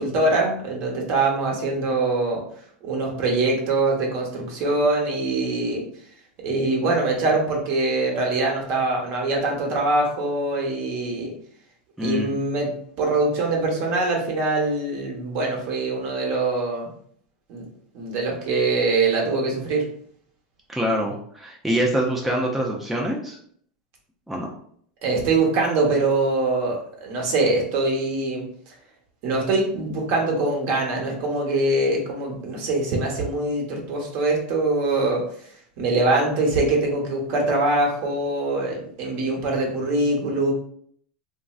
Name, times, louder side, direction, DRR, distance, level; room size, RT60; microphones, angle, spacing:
voice 1, 0.0-2.4 2.8-5.8 6.4-11.3 12.0-12.7 13.0-16.9 17.5-17.6 17.9-19.8 25.0-28.7 29.2-35.2 35.8-40.5, right 2 dB, 55° right, 0 dB, 0.9 m, -23 dB
voice 2, 12.0-12.3 20.7-23.4 24.3-24.5, equal, 5° right, -2 dB, 0.4 m, -25 dB
3.1 x 2.5 x 2.3 m, 0.62 s
supercardioid pair, 125°, 4 cm